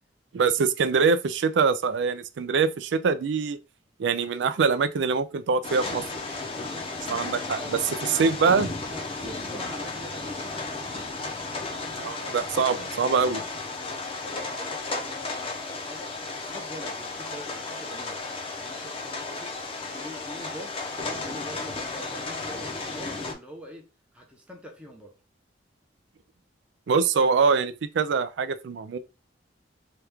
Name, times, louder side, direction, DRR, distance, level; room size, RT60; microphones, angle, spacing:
voice 1, 0.3-3.6 4.0-6.0 7.1-7.8 8.1-8.7 12.0-13.4 26.9-29.0, right 5 dB, 75° right, 0.4 m, -24 dB
sound 1, 5.6-23.3, left 3 dB, 30° left, 0.6 m, -34 dB
voice 2, 6.3-8.3 8.9-11.1 13.4-16.1 16.3-18.2 18.6-19.5 19.9-20.8 21.2-23.9 24.1-25.2, equal, 5° right, 0.7 m, -44 dB
2.9 x 2.4 x 3.4 m
head